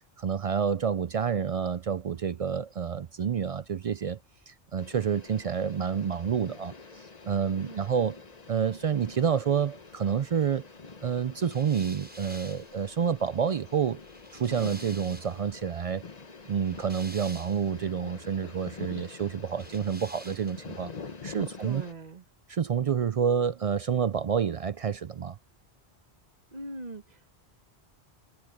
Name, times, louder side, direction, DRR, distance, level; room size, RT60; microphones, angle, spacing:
voice 1, 0.2-4.2 4.5-6.7 7.3-8.2 8.5-10.6 11.0-14.0 14.3-16.0 16.5-20.9 21.2-21.8 22.5-25.4, right 7 dB, 65° right, 0.3 m, -28 dB
sound 1, 4.8-21.9, left 4 dB, 40° left, 1.1 m, -46 dB
voice 2, 7.6-7.9 21.6-22.2 26.5-27.3, right 2 dB, 40° right, 1.2 m, -41 dB
sound 2, 11.4-15.5 16.4-17.9 19.5-20.8, equal, 10° right, 6.6 m, -49 dB
omnidirectional pair, 1.1 m